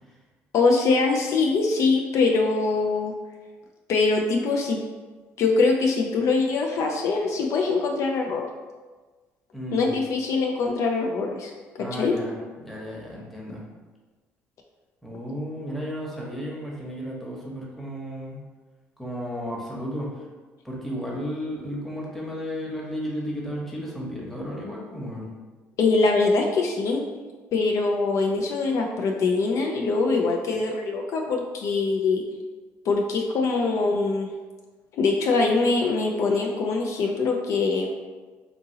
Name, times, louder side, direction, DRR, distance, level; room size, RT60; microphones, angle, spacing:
voice 1, 0.5-3.1 3.9-4.8 5.4-8.4 9.7-11.5 11.8-12.1 25.8-27.0 27.5-32.2 32.9-34.3 34.9-37.9, left 3 dB, 60° left, 1 dB, 0.3 m, -23 dB
voice 2, 9.5-10.0 11.8-13.6 15.0-18.4 19.0-20.3 20.6-25.3, equal, ahead, -4 dB, 0.9 m, -33 dB
2.7 x 2.6 x 2.7 m, 1.3 s
hypercardioid pair, 65°, 6 cm